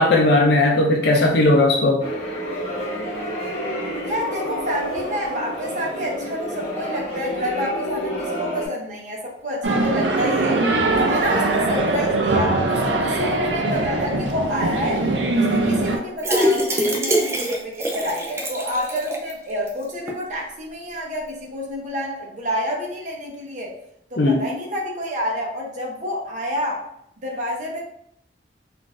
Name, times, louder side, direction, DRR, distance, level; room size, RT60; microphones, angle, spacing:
voice 1, 0.0-2.0 24.2-24.4, left 2 dB, 60° left, 0 dB, 0.5 m, -17 dB
sound 1, 2.0-8.7, equal, 30° left, 1.0 m, -29 dB
voice 2, 4.0-10.6 10.9-15.0 15.3-23.7 24.1-26.8 27.2-27.8, equal, 45° right, -2 dB, 0.7 m, -28 dB
sound 2, 9.6-16.0, right 2 dB, 75° right, 0.5 m, -21 dB
sound 3, 16.2-19.3 19.7-19.8 20.1-20.2, equal, 15° right, 0.4 m, -23 dB
3.7 x 2.5 x 2.4 m, 0.73 s
head